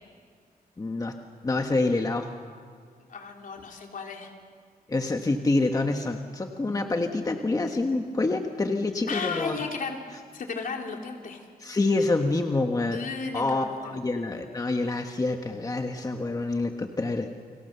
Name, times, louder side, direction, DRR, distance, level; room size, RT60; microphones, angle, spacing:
voice 1, 0.8-1.1 1.4-2.3 4.9-9.6 11.6-13.0 13.3-17.3, left 2 dB, 25° left, 4 dB, 1.3 m, -27 dB
voice 2, 3.1-4.3 9.1-10.0 10.3-11.4 12.9-14.0, left 5 dB, 60° left, 2 dB, 3.5 m, -34 dB
30.0 x 24.0 x 6.9 m, 2.1 s
wide cardioid pair, 120°, 16 cm